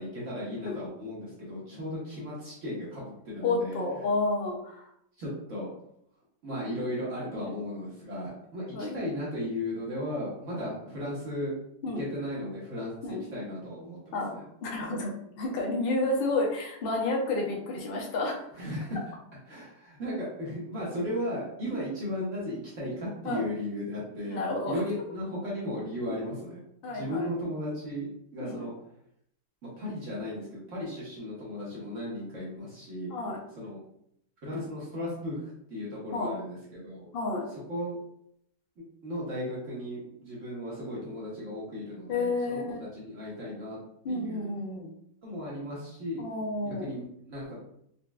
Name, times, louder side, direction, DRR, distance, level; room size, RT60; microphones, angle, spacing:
voice 1, 0.0-3.8 5.2-5.7 6.4-11.5 12.0-14.4 18.6-19.0 19.5-26.6 26.8-28.7 29.6-33.1 33.6-33.8 34.4-37.1 37.5-38.0 38.8-43.8 44.1-44.5 45.2-46.2 46.6-47.6, left 1 dB, 55° right, -6 dB, 1.1 m, -36 dB
voice 2, 3.4-4.9 7.4-7.5 8.7-8.9 11.8-12.1 13.0-13.2 14.1-14.3 14.6-18.4 21.6-21.8 23.2-23.4 24.3-24.8 26.8-27.3 28.4-28.6 33.1-33.4 36.1-36.3 37.1-37.5 42.1-42.8 44.0-44.9 46.2-46.9, left 2 dB, 65° left, -1 dB, 0.5 m, -30 dB
4.0 x 2.2 x 2.2 m, 0.74 s
omnidirectional pair, 1.8 m